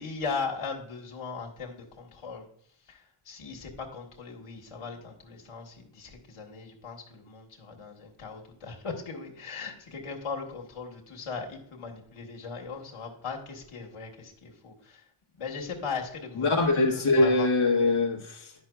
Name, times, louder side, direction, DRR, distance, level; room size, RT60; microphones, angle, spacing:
voice 1, 0.0-2.5 2.9-15.0 15.4-16.7 16.9-17.5, left 5 dB, 85° left, 0 dB, 1.6 m, -38 dB
voice 2, 16.3-18.5, left 2 dB, 70° left, -3 dB, 1.3 m, -23 dB
9.6 x 6.0 x 2.3 m, 0.66 s
wide cardioid pair, 115°, 50 cm